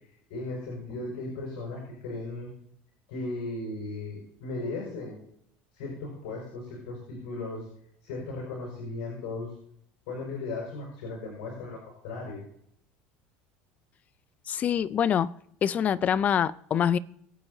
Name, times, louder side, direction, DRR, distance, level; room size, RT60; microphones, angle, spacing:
voice 1, 0.3-2.5 3.1-5.2 5.7-7.7 8.0-9.5 10.1-12.4, left 2 dB, 80° left, 5.7 m, -36 dB
voice 2, 14.5-15.3 15.6-17.0, left 8 dB, 30° left, 0.4 m, -25 dB
23.5 x 8.7 x 2.8 m
supercardioid pair, 135°, 5 cm